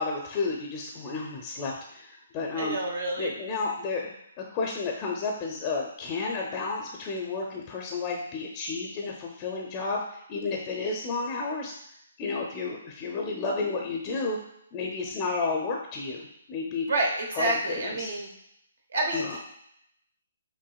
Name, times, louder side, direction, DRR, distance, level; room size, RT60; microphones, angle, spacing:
voice 1, 0.0-2.8 3.2-4.1 4.4-10.0 10.3-11.7 12.2-14.4 14.7-16.9 17.3-18.1 19.1-19.4, left 4 dB, 25° left, 0 dB, 0.5 m, -31 dB
voice 2, 2.5-3.3 16.9-18.3 18.9-19.4, right 2 dB, 70° right, 0 dB, 0.9 m, -28 dB
5.7 x 2.5 x 2.3 m, 0.75 s
hypercardioid pair, 145°, 0 cm